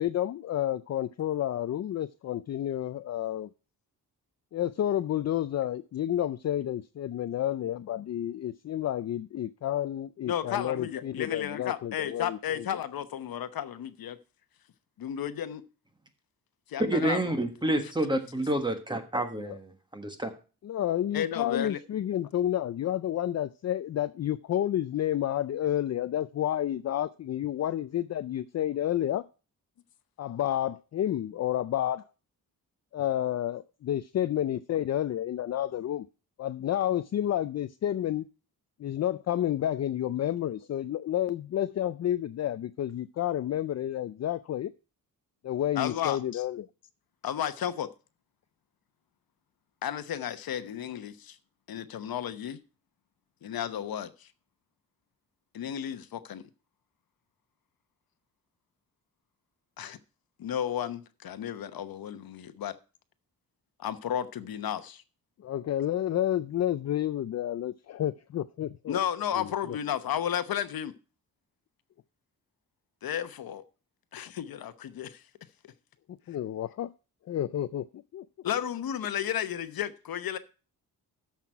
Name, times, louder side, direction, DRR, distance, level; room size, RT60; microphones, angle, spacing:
voice 1, 0.0-3.5 4.5-12.8 19.4-19.6 20.6-29.2 30.2-32.0 32.9-36.0 36.4-38.3 38.8-44.7 45.4-46.7 65.4-69.0 69.3-69.8 76.3-76.9 77.3-78.2, left 11 dB, 50° left, 0.4 m, -30 dB
voice 2, 10.3-14.2 15.0-15.6 16.7-17.4 21.1-21.8 45.8-46.4 47.2-47.9 49.8-51.4 51.7-52.6 53.4-54.3 55.5-56.4 59.8-60.0 60.4-62.7 63.8-65.0 68.9-70.9 73.0-73.6 74.1-75.2 78.4-80.4, left 10 dB, 75° left, 1.0 m, -33 dB
voice 3, 16.9-20.3, right 1 dB, 15° right, 1.4 m, -29 dB
13.5 x 5.9 x 4.6 m
wide cardioid pair, 165°, 36 cm